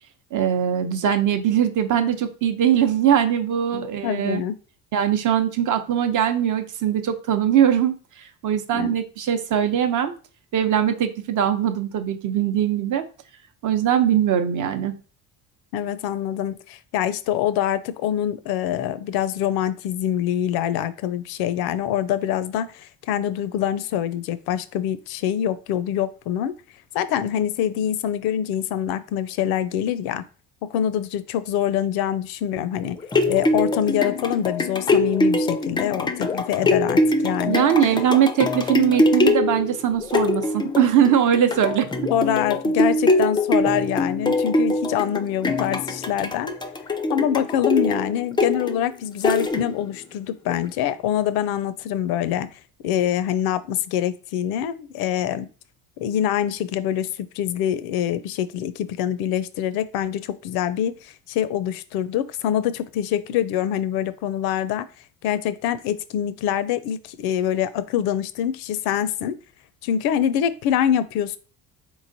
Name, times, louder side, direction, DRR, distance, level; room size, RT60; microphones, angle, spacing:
voice 1, 0.3-4.4 4.9-10.1 10.5-13.0 13.6-15.0 37.5-41.9, right 9 dB, 50° right, 8 dB, 0.7 m, -21 dB
voice 2, 3.7-4.6 8.7-8.9 15.7-26.5 26.9-30.2 30.6-33.0 33.3-37.7 42.1-46.5 47.1-52.5 52.8-55.5 56.0-64.9 65.2-69.4 69.8-71.4, left 10 dB, 70° left, 15 dB, 0.5 m, -25 dB
sound 1, 32.8-50.0 50.5-50.6, left 2 dB, 15° left, 0.3 m, -23 dB
3.7 x 3.1 x 2.6 m, 0.36 s
supercardioid pair, 75°, 39 cm